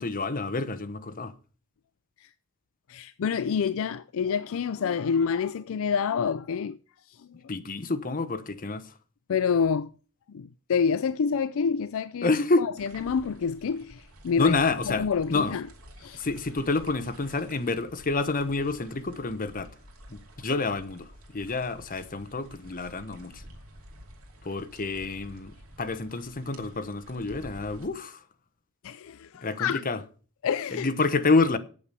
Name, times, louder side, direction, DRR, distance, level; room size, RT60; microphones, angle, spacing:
voice 1, 0.0-1.3 7.5-8.9 12.2-12.7 14.4-15.5 16.1-19.7 20.1-23.4 24.4-25.5 25.8-28.2 29.4-30.0 30.7-31.6, left 3 dB, 40° left, 1.0 m, -28 dB
voice 2, 2.9-6.8 7.1-7.4 9.3-9.9 10.3-12.3 12.6-14.6 14.9-15.6 16.0-16.2 28.8-29.8 30.4-30.9, left 6 dB, 65° left, 0.4 m, -28 dB
sound 1, 12.8-27.9, right 1 dB, 70° right, 2.6 m, -50 dB
8.6 x 6.9 x 8.2 m
head